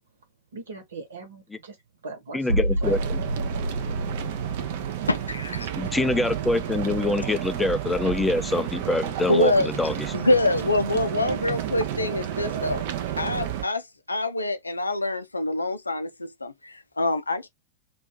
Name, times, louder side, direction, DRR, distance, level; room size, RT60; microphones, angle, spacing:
voice 1, 0.5-1.8 2.0-3.2, right 3 dB, 70° right, 1.2 m, -40 dB
voice 2, 2.3-3.2 5.8-10.1, left 2 dB, 10° left, 0.3 m, -25 dB
sound 1, 2.5-8.2 8.5-8.7, right 1 dB, 85° right, 0.7 m, -31 dB
sound 2, 2.8-13.6, right 11 dB, 50° right, 0.5 m, -31 dB
voice 3, 5.1-5.7 9.3-9.7 10.1-12.8 13.2-17.5, left 2 dB, 80° left, 0.4 m, -25 dB
2.4 x 2.3 x 3.6 m
figure-of-eight pair, 90°, 0 cm